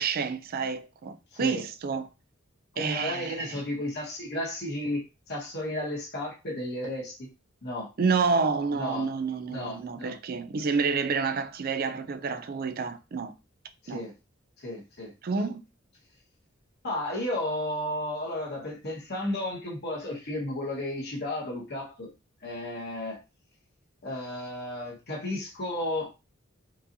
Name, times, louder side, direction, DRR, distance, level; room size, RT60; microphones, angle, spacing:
voice 1, 0.0-2.1 2.8-3.6 8.0-13.3 13.9-14.0 15.2-15.6, right 5 dB, 45° right, 0.4 m, -29 dB
voice 2, 1.3-1.6 2.7-7.3 7.6-7.9 8.7-9.1 9.5-10.2 13.8-14.1 14.6-15.1 16.8-22.1 22.4-23.2 24.0-26.3, left 1 dB, 55° left, 1.5 m, -33 dB
4.5 x 2.8 x 2.7 m
head